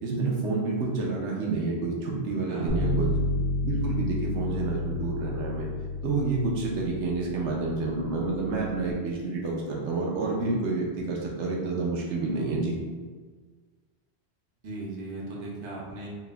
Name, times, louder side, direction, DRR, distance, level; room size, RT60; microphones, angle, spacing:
voice 1, 0.0-3.1 3.6-5.7 6.0-12.8, right 3 dB, 90° right, -2 dB, 1.0 m, -29 dB
voice 2, 2.5-2.9 14.6-16.1, right 2 dB, 55° right, -4 dB, 1.0 m, -38 dB
Bass guitar, 2.7-8.9, left 2 dB, 75° left, 1.0 m, -31 dB
4.4 x 2.1 x 3.3 m, 1.5 s
omnidirectional pair, 1.1 m